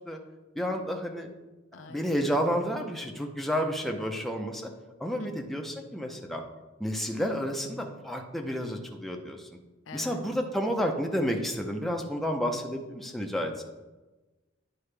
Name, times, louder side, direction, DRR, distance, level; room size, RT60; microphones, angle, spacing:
voice 1, 0.6-1.3 1.9-4.7 5.0-6.4 6.8-9.4 9.9-13.6, equal, ahead, 2 dB, 0.6 m, -30 dB
voice 2, 1.7-2.2 5.2-5.3 9.9-10.3, left 3 dB, 85° left, 8 dB, 0.6 m, -43 dB
9.8 x 4.7 x 3.3 m, 1.1 s
head